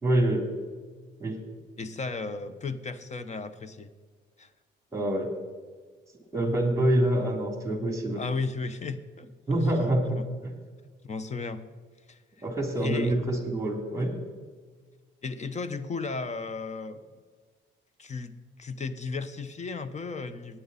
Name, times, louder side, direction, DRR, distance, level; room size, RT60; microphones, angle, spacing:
voice 1, 0.0-0.5 1.2-1.4 4.9-5.3 6.3-8.2 9.5-10.2 12.4-14.1, right 1 dB, 15° right, 3 dB, 3.0 m, -26 dB
voice 2, 1.8-3.9 4.4-4.5 8.2-9.7 10.1-10.3 11.0-11.6 12.1-12.2 12.8-13.1 15.2-17.0 18.0-20.6, left 4 dB, 35° left, 12 dB, 1.0 m, -35 dB
19.5 x 9.3 x 4.2 m, 1.5 s
cardioid pair, 90°, 20 cm